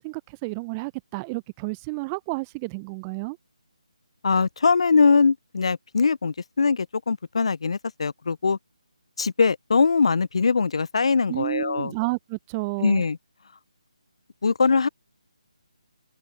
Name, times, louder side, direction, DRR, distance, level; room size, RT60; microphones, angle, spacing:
voice 1, 0.0-3.4 11.3-13.0, right 27 dB, 15° right, 0.4 m, -31 dB
voice 2, 4.2-8.6 9.2-11.9 12.8-13.2 14.4-14.9, left 5 dB, 60° left, 0.4 m, -21 dB
figure-of-eight pair, 150°, 4 cm